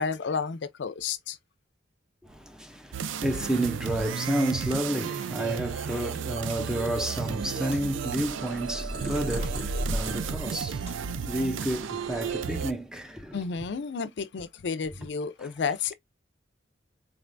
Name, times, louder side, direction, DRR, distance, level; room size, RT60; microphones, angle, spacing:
voice 1, 0.0-1.4 13.3-15.9, left 5 dB, 65° left, 0.4 m, -31 dB
voice 2, 2.2-13.4 15.4-15.5, right 1 dB, 5° right, 0.4 m, -31 dB
sound 1, 2.9-12.7, right 7 dB, 85° right, 0.4 m, -33 dB
sound 2, 6.2-6.7 7.6-8.3 9.0-9.6 10.4-11.0, right 2 dB, 40° right, 1.3 m, -51 dB
Purr, 7.9-11.5 11.8-12.9, equal, 60° right, 1.8 m, -35 dB
3.8 x 3.3 x 2.4 m
head